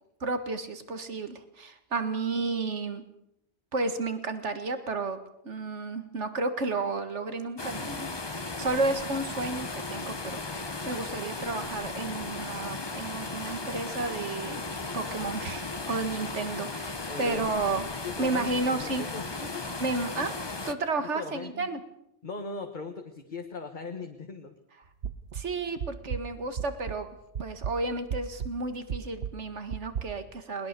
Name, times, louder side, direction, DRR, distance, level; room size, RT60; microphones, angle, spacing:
voice 1, 0.2-3.0 3.7-5.2 5.4-8.1 8.4-14.6 14.9-17.9 18.2-19.0 19.8-20.3 20.7-21.8 25.3-27.1 27.4-30.7, right 3 dB, 90° right, 9 dB, 2.1 m, -32 dB
sound 1, 7.6-20.7, left 3 dB, 25° left, 1.0 m, -36 dB
voice 2, 17.1-17.5 18.0-19.7 21.1-21.7 22.2-24.5, left 4 dB, 45° left, 5 dB, 1.5 m, -39 dB
sound 2, 25.0-27.1 27.4-30.0, right 8 dB, 70° right, 1.3 m, -36 dB
20.5 x 20.5 x 6.8 m, 0.80 s
omnidirectional pair, 1.2 m